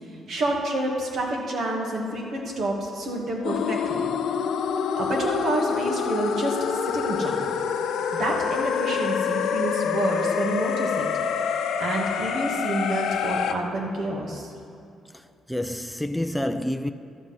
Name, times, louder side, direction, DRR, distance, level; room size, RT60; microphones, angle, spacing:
voice 1, 0.3-4.1 5.0-6.6 6.8-7.3 8.2-11.1 11.8-14.5, right 1 dB, 60° right, 2.4 m, -28 dB
sound 1, 3.4-13.5, left 7 dB, 80° left, 0.7 m, -26 dB
voice 2, 15.1-16.9, left 1 dB, ahead, 0.5 m, -29 dB
12.5 x 7.7 x 6.2 m
cardioid pair, 90°, 0 cm